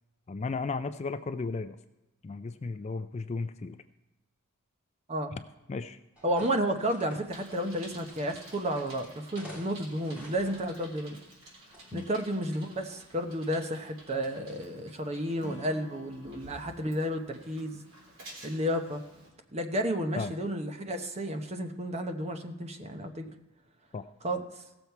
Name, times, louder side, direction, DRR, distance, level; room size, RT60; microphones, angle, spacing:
voice 1, 0.3-1.8 2.2-3.8 5.7-6.0 11.9-12.2 20.2-20.3 23.9-24.1, left 4 dB, 30° left, 11 dB, 0.3 m, -35 dB
sound 1, 6.2-13.2, left 1 dB, 5° right, 2.4 m, -53 dB
voice 2, 6.2-11.2 11.9-17.8 18.4-19.0 19.5-23.3 24.2-24.6, equal, 30° right, 6 dB, 0.9 m, -32 dB
Bicycle, 7.3-19.3, right 1 dB, 65° right, 3.6 m, -52 dB
Acoustic guitar / Strum, 15.4-18.6, left 1 dB, 15° left, 1.6 m, -51 dB
17.0 x 7.1 x 4.6 m, 1.0 s
head